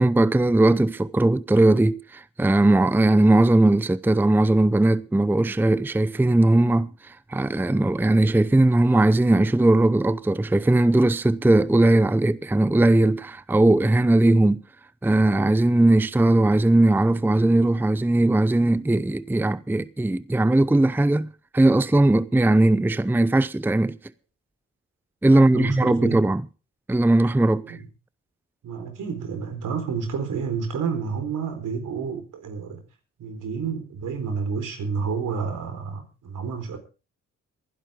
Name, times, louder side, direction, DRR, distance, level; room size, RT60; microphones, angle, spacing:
voice 1, 0.0-14.6 15.0-21.3 21.5-24.0 25.2-26.4 26.9-27.8, right 2 dB, 5° right, 0.6 m, -19 dB
voice 2, 25.3-26.2 27.7-27.8 28.6-32.8 33.2-36.8, right 6 dB, 70° right, 4.4 m, -30 dB
23.0 x 11.0 x 3.7 m
supercardioid pair, 55°, 32 cm